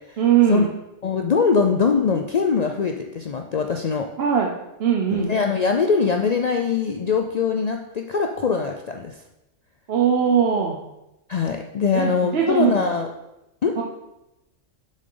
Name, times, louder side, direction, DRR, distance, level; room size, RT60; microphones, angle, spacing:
voice 1, 0.2-0.7 4.2-4.5 4.8-5.3 9.9-10.8 11.9-12.9 13.8-13.9, right 8 dB, 55° right, 0 dB, 0.9 m, -20 dB
voice 2, 1.0-4.1 5.1-9.2 11.3-13.1 13.6-13.7, left 5 dB, 85° left, 4 dB, 0.3 m, -22 dB
7.7 x 6.3 x 3.8 m, 0.92 s
omnidirectional pair, 1.3 m